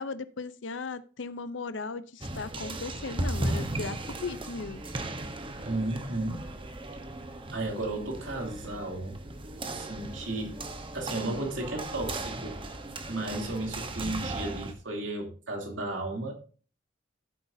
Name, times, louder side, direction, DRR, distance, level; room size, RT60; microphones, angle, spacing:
voice 1, 0.0-4.8, left 4 dB, 75° left, 13 dB, 0.6 m, -37 dB
sound 1, 2.2-14.7, right 2 dB, 30° right, 1.0 m, -36 dB
voice 2, 5.6-6.4 7.5-9.2 9.6-10.6 10.9-12.6 13.1-16.3, right 2 dB, 90° right, 2 dB, 2.9 m, -34 dB
14.5 x 7.9 x 2.7 m, 0.37 s
head